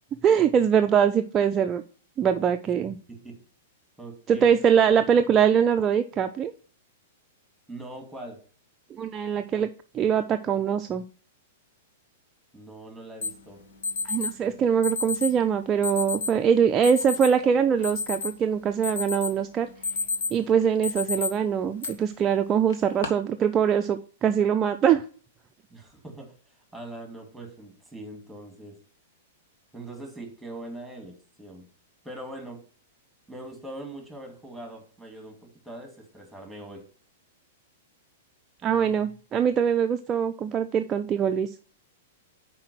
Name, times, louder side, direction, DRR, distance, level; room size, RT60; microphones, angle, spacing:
voice 1, 0.2-1.8 2.2-3.0 4.3-6.5 9.0-9.7 9.9-11.0 14.0-19.7 20.3-25.0 38.6-41.5, right 8 dB, 25° right, 7 dB, 0.4 m, -23 dB
voice 2, 3.1-3.4 4.0-4.7 5.0-5.1 7.7-8.4 12.5-13.6 25.7-28.8 29.7-31.7 32.0-32.6 33.3-36.9, right 1 dB, ahead, 3 dB, 2.3 m, -42 dB
Alarm, 13.2-13.3 13.8-14.3 14.8-15.3 15.8-16.3 16.8-17.3 17.7-18.5 18.8-19.3 19.7-20.4 20.8-21.3 21.8-21.9 22.7-23.1, left 4 dB, 70° left, 1.4 m, -29 dB
5.6 x 4.5 x 6.1 m, 0.42 s
hypercardioid pair, 110°, 0 cm